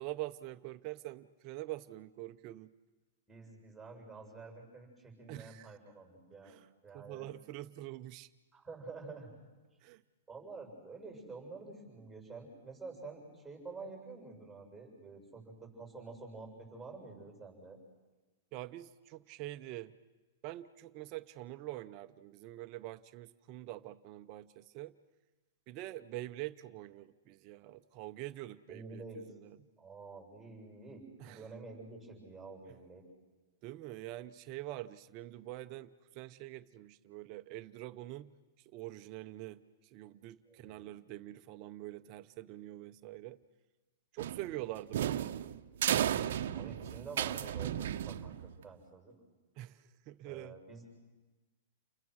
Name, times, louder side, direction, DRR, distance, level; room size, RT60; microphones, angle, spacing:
voice 1, 0.0-2.7 5.3-5.7 6.4-6.7 6.9-8.3 9.8-10.0 18.5-19.9 20.4-24.9 25.7-29.0 29.4-29.6 31.2-31.4 33.6-38.3 38.7-39.6 39.9-43.4 44.1-45.5 49.6-50.6, right 16 dB, 40° right, 10 dB, 0.8 m, -45 dB
voice 2, 3.3-6.6 6.8-7.3 8.5-9.4 10.3-17.8 28.7-29.3 29.8-33.0 40.5-40.9 46.5-49.1 50.2-50.9, right 3 dB, 5° right, 1 dB, 7.0 m, -49 dB
sound 1, 44.2-48.6, right 10 dB, 70° right, 0.8 m, -34 dB
29.5 x 21.5 x 6.4 m, 1.2 s
hypercardioid pair, 135°, 0 cm